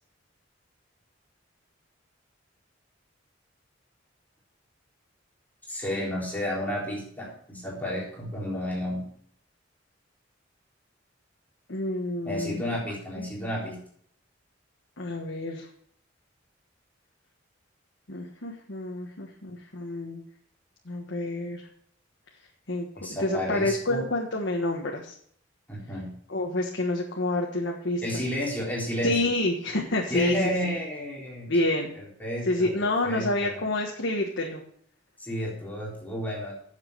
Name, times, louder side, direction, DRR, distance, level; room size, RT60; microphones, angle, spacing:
voice 1, 5.7-9.1 12.2-13.8 23.0-24.1 25.7-26.1 28.0-29.3 30.1-31.5 31.9-33.6 35.2-36.6, equal, 10° left, -5 dB, 4.0 m, -32 dB
voice 2, 11.7-12.6 13.2-13.3 15.0-15.7 18.1-20.2 20.9-21.6 22.7-22.9 23.2-25.1 26.3-28.2 29.0-30.4 30.6-30.7 31.5-31.9 32.5-34.6, left 2 dB, 65° left, 0 dB, 1.4 m, -28 dB
9.6 x 7.4 x 6.7 m, 0.63 s
head